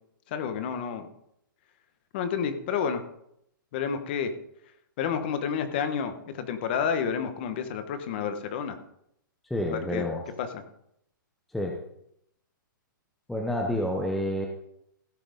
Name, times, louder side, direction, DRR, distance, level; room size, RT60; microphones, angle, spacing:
voice 1, 0.3-1.1 2.1-3.0 3.7-4.3 5.0-8.8 9.7-10.1 10.4-10.6, left 7 dB, 30° left, 9 dB, 1.1 m, -30 dB
voice 2, 9.5-10.2 11.5-11.7 13.3-14.5, left 1 dB, ahead, 1 dB, 0.6 m, -28 dB
16.0 x 5.9 x 5.2 m, 0.75 s
hypercardioid pair, 170°, 11 cm